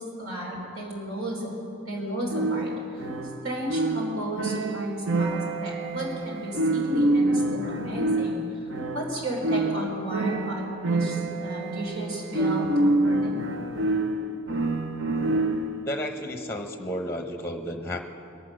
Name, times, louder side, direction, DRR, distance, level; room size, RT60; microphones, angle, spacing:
voice 1, 0.2-1.5 1.9-3.0 3.4-8.7 8.9-13.4, right 1 dB, 85° right, -4 dB, 3.6 m, -33 dB
sound 1, 2.3-15.9, right 2 dB, 60° right, 0.8 m, -27 dB
voice 2, 15.8-18.0, equal, 10° left, 5 dB, 0.9 m, -32 dB
22.5 x 8.2 x 6.4 m, 2.8 s
head